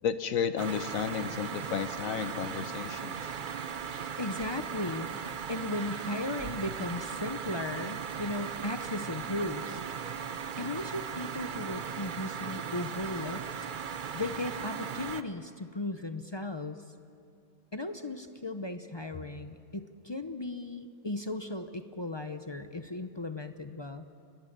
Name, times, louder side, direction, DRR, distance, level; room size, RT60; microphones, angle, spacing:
voice 1, 0.0-3.2, left 7 dB, 60° left, 11 dB, 1.2 m, -32 dB
sound 1, 0.6-15.2, right 7 dB, 50° right, 0.6 m, -38 dB
voice 2, 4.2-5.1 5.5-9.8 10.6-13.7 14.1-16.8 17.7-24.1, left 2 dB, 40° left, 8 dB, 0.4 m, -36 dB
28.5 x 19.5 x 6.7 m, 2.4 s
omnidirectional pair, 1.7 m